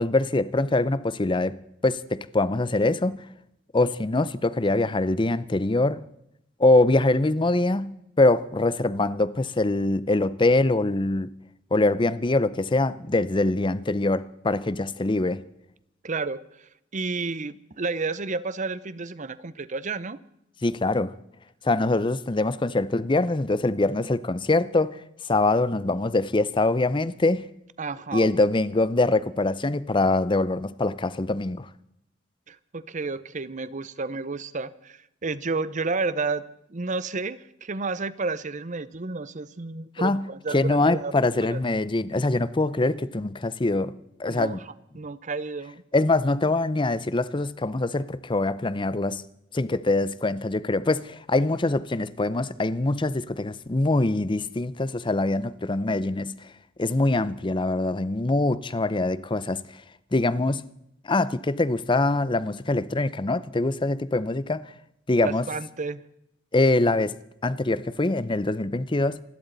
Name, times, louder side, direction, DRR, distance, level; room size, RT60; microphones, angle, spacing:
voice 1, 0.0-3.2 3.7-6.0 6.6-11.3 11.7-15.4 20.6-21.1 21.6-25.0 25.3-27.4 28.1-31.7 40.0-44.6 45.9-49.2 49.5-56.3 56.8-59.6 60.1-60.6 61.0-64.6 65.1-65.4 66.5-67.1 67.4-69.2, left 2 dB, 25° left, 0.6 m, -24 dB
voice 2, 16.0-20.2 27.8-28.4 32.5-41.1 41.5-41.6 44.3-45.8 65.2-66.0, right 3 dB, 40° right, 0.8 m, -31 dB
28.0 x 12.5 x 4.0 m
head